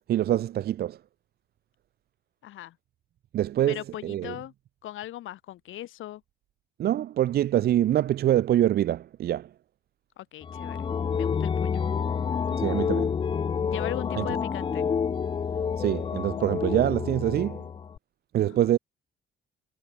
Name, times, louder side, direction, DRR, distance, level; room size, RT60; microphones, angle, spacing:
voice 1, 0.1-1.0 3.3-4.3 6.8-9.5 12.6-13.1 14.2-14.3 15.8-17.6 18.3-18.8, right 12 dB, 55° right, 0.4 m, -25 dB
voice 2, 2.4-2.8 3.7-4.5 4.8-6.2 10.2-10.9 11.1-11.8 13.7-14.9 18.4-18.7, left 14 dB, 85° left, 5.0 m, -38 dB
sound 1, 10.4-18.0, left 6 dB, 25° left, 0.3 m, -28 dB
cardioid pair, 90°, 20 cm